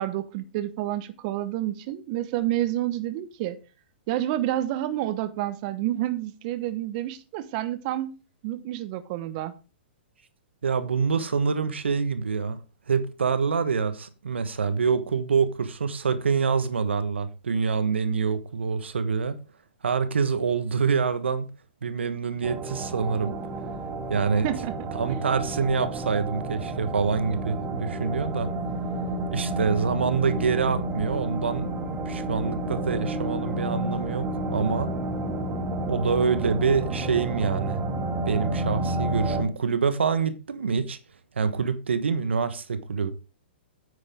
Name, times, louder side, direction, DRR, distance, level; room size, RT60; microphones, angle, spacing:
voice 1, 0.0-3.6 4.1-8.1 8.4-9.5 24.4-25.3, right 13 dB, 45° right, 1.0 m, -29 dB
voice 2, 10.6-12.6 12.9-19.4 19.8-21.5 21.8-23.3 24.1-24.5 24.9-28.5 29.3-31.7 32.0-34.9 35.9-37.8 38.3-41.0 41.4-43.1, right 5 dB, 80° right, 1.3 m, -26 dB
sound 1, 22.4-39.4, right 2 dB, 25° right, 1.9 m, -30 dB
9.5 x 9.0 x 3.6 m
hypercardioid pair, 120°, 6 cm